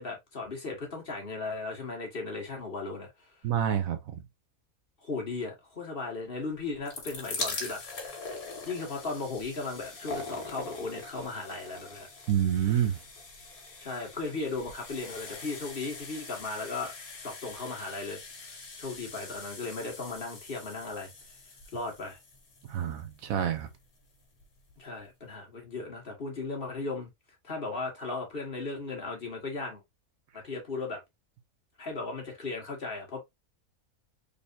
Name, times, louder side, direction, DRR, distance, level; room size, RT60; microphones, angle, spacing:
voice 1, 0.0-3.1 5.0-7.8 8.6-12.1 13.8-16.9 17.2-21.1 21.7-22.2 24.8-27.1 27.4-29.8 30.4-31.0 31.8-33.2, left 3 dB, 40° left, 1.6 m, -36 dB
voice 2, 3.4-4.0 12.3-13.0 22.7-23.7, right 9 dB, 70° right, 1.1 m, -27 dB
sound 1, 6.6-23.6 24.4-24.5 24.7-24.8, left 3 dB, 75° left, 1.9 m, -43 dB
4.0 x 3.4 x 2.6 m
omnidirectional pair, 1.5 m